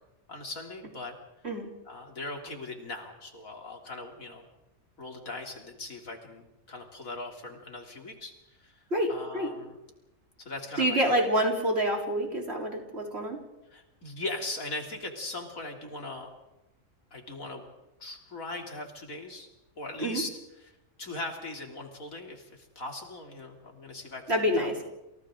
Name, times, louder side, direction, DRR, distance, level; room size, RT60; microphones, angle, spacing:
voice 1, 0.3-1.2 1.9-4.4 5.0-8.3 8.6-8.8 9.1-9.8 10.4-11.0 13.7-16.3 17.1-17.7 18.0-19.5 19.8-20.3 21.0-24.2 24.6-24.8, left 2 dB, 90° left, 2 dB, 3.6 m, -39 dB
voice 2, 8.9-9.5 10.8-13.4 20.0-20.2 24.3-24.8, equal, 50° right, 1 dB, 4.1 m, -27 dB
29.0 x 28.5 x 3.8 m, 0.97 s
omnidirectional pair, 1.4 m